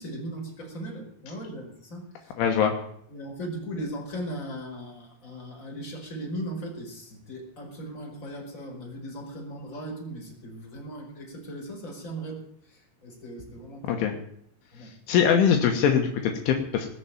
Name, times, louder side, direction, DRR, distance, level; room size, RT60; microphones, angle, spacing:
voice 1, 0.0-2.3 3.1-12.4 12.7-14.0 14.7-14.9, right 1 dB, 15° left, -1 dB, 4.7 m, -38 dB
voice 2, 2.4-2.8 13.8-14.1 15.1-16.9, left 7 dB, 75° left, 3 dB, 3.7 m, -22 dB
20.5 x 7.0 x 9.1 m, 0.68 s
omnidirectional pair, 5.9 m